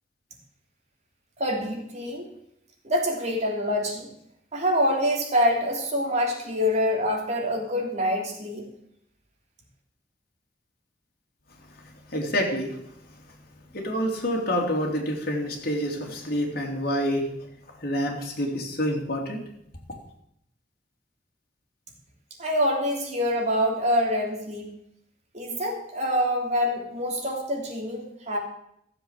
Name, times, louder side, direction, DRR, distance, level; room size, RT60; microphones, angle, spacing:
voice 1, 1.4-2.3 2.8-4.1 4.5-8.7 22.4-24.7 25.3-28.4, equal, 40° right, 0 dB, 3.2 m, -25 dB
voice 2, 12.1-12.8 13.7-17.3 17.8-19.4, equal, 60° left, 0 dB, 3.0 m, -27 dB
14.0 x 7.4 x 7.4 m, 0.75 s
head